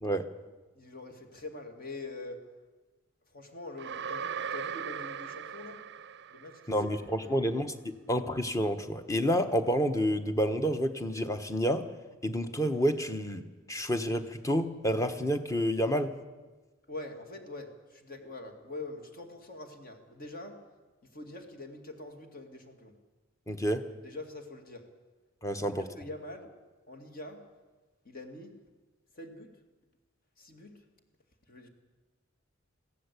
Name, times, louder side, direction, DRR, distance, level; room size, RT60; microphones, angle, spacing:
voice 1, 0.8-2.4 3.3-5.8 6.3-6.8 7.2-7.3 16.9-20.6 21.0-22.9 24.0-24.9 25.6-26.5 26.9-27.4 28.0-28.5 29.1-29.5 30.4-30.7 31.5-31.7, left 2 dB, 45° left, 5 dB, 2.3 m, -44 dB
sound 1, 3.8-6.9, right 7 dB, 60° right, 0.5 m, -38 dB
voice 2, 6.7-11.9 12.2-13.4 13.7-16.1 23.5-23.9 25.4-25.9, equal, 15° left, 9 dB, 1.2 m, -29 dB
22.0 x 16.0 x 8.4 m, 1.3 s
head